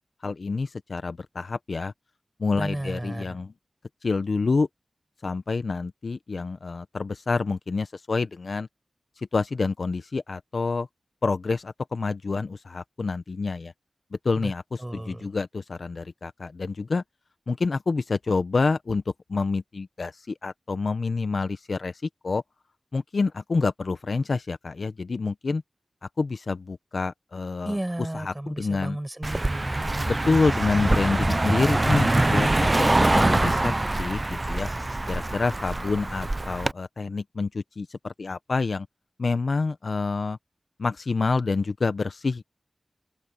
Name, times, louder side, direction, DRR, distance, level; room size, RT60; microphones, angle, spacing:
voice 1, 0.2-1.9 2.4-3.5 4.0-4.7 5.2-8.7 9.2-10.9 11.2-13.7 14.1-14.6 14.9-17.0 17.5-19.0 19.3-22.4 22.9-25.6 26.2-27.7 28.3-29.0 30.1-33.7 34.0-34.7 35.1-38.9 39.2-40.4 40.8-42.4, left 4 dB, 75° left, 0.8 m, -27 dB
voice 2, 2.5-3.4 14.4-14.5 14.8-15.3 27.6-30.2, right 1 dB, 20° right, 6.2 m, -33 dB
Car passing by, 29.2-36.7, right 2 dB, 35° right, 0.5 m, -24 dB
open air
cardioid pair, 40°, 0 cm